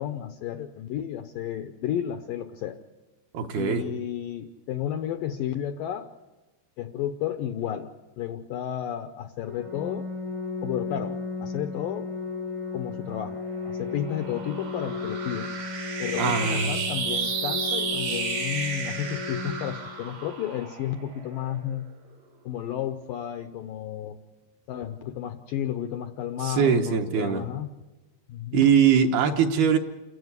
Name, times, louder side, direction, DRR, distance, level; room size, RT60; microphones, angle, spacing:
voice 1, 0.0-2.8 3.6-6.1 6.8-7.9 8.2-10.1 10.6-12.1 12.7-13.4 13.6-15.5 16.0-21.9 22.4-24.2 24.7-27.7 28.3-28.7, left 10 dB, 85° left, 8 dB, 1.9 m, -32 dB
voice 2, 3.3-3.9 16.2-16.8 26.4-27.5 28.5-29.8, right 7 dB, 70° right, 3 dB, 2.8 m, -22 dB
Organ, 9.4-20.4, left 4 dB, 15° right, 0.8 m, -35 dB
sound 1, 13.2-21.8, right 5 dB, 90° right, 5.6 m, -33 dB
28.5 x 14.5 x 9.6 m, 1.1 s
omnidirectional pair, 5.1 m